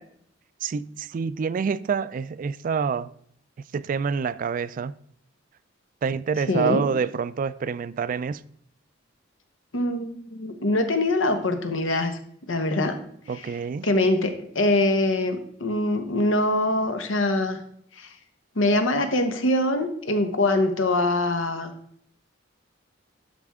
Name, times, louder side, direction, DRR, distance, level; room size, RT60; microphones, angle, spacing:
voice 1, 0.6-3.1 3.7-4.9 6.0-8.4 13.3-13.9, right 6 dB, 45° right, 0.3 m, -27 dB
voice 2, 6.5-6.8 9.7-12.2 12.5-13.0 13.3-13.5 13.8-17.6 18.0-18.1 18.6-21.7, left 1 dB, 90° left, 1.1 m, -23 dB
12.0 x 4.5 x 3.6 m
head